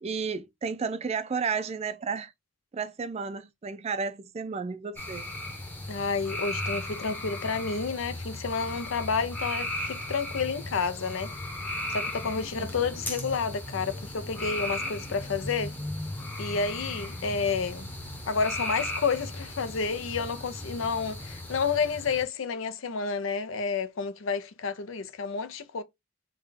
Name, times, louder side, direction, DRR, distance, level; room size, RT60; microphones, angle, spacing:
voice 1, 0.0-2.3 2.7-5.3 12.6-12.7, right 5 dB, 35° right, 0.4 m, -32 dB
sound 1, 5.0-22.2, left 1 dB, 10° left, 0.8 m, -36 dB
voice 2, 5.9-11.3 11.9-15.7 16.4-17.9 18.3-25.8, left 5 dB, 80° left, 0.6 m, -30 dB
3.4 x 2.3 x 3.5 m
head